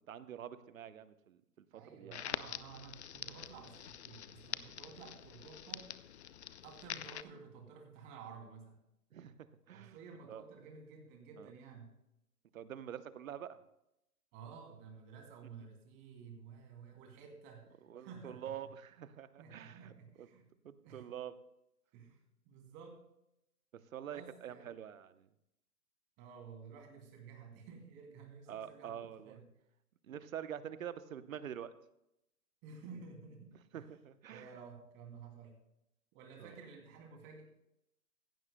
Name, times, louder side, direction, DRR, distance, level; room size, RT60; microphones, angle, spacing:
voice 1, 0.1-1.6 2.0-2.2 9.1-9.3 9.7-10.0 10.3-10.4 11.4-11.5 12.5-13.6 17.9-19.9 20.2-20.3 20.6-21.3 23.9-25.3 28.5-29.4 30.1-31.7 33.7-34.5 36.4-36.5, right 9 dB, 55° right, 13 dB, 0.9 m, -46 dB
voice 2, 1.7-5.9 6.6-8.8 9.7-11.9 14.3-18.5 19.4-20.5 20.8-21.1 21.9-22.2 22.4-23.0 24.1-24.7 26.2-29.0 29.2-29.5 32.6-33.9 34.3-35.6 36.1-37.5, right 5 dB, 25° right, 2 dB, 2.7 m, -53 dB
Crackle, 2.1-7.2, left 10 dB, 45° left, 0.5 m, -45 dB
16.0 x 15.5 x 2.2 m, 0.83 s
hypercardioid pair, 145°, 48 cm